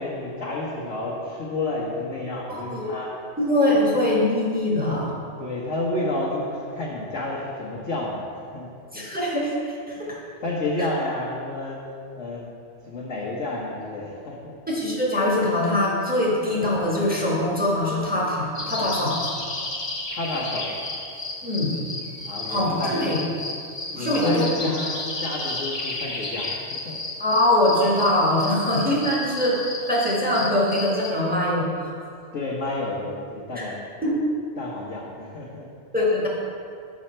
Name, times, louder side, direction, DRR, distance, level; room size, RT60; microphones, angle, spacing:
voice 1, 0.0-3.1 3.7-3.8 5.4-8.2 8.5-8.7 10.0-11.8 12.2-12.5 12.8-14.5 20.1-20.7 22.2-23.3 23.9-26.5 26.8-27.0 32.3-33.8 34.6-35.7, left 2 dB, 75° left, -7 dB, 1.4 m, -30 dB
voice 2, 2.5-2.9 3.4-5.1 8.9-10.2 14.7-19.2 21.4-21.8 22.5-23.2 23.9-24.7 27.2-29.6 29.9-31.9 33.5-33.6 34.0-34.2 35.9-36.3, left 1 dB, 5° right, -6 dB, 1.3 m, -23 dB
sound 1, 18.6-31.1, left 2 dB, 25° left, 0.8 m, -33 dB
6.3 x 6.2 x 4.3 m, 2.3 s
omnidirectional pair, 1.3 m